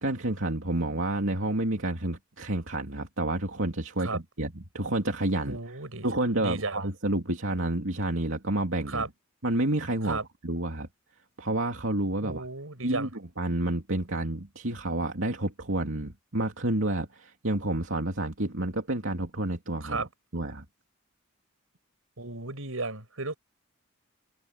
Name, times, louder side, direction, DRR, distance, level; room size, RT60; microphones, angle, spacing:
voice 1, 0.0-5.8 6.0-9.1 9.4-10.9 11.4-12.5 12.8-20.6, right 1 dB, 65° right, 2.9 m, -29 dB
voice 2, 5.5-6.1 6.4-6.8 8.9-9.1 10.1-10.2 12.2-13.1 19.8-20.1 22.2-23.4, right 3 dB, 85° right, 6.0 m, -34 dB
head